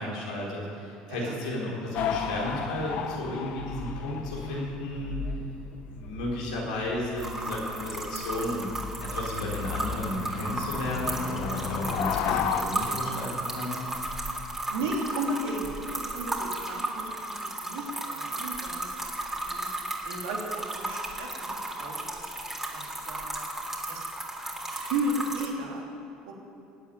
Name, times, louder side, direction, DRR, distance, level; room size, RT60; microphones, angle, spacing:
voice 1, 0.0-5.2 5.9-8.7 9.0-13.8, left 1 dB, 90° left, -4 dB, 4.3 m, -33 dB
voice 2, 1.0-1.4 14.7-18.9 19.3-19.7 20.0-22.3 22.7-23.5 23.9-24.0 24.7-25.8 26.2-26.3, right 2 dB, 80° right, -1 dB, 3.1 m, -34 dB
sound 1, 1.9-12.6, left 7 dB, 65° left, 1.1 m, -34 dB
sound 2, 7.2-25.5, right 1 dB, 10° right, 3.4 m, -34 dB
16.5 x 8.7 x 9.0 m, 2.6 s
hypercardioid pair, 75°, 3 cm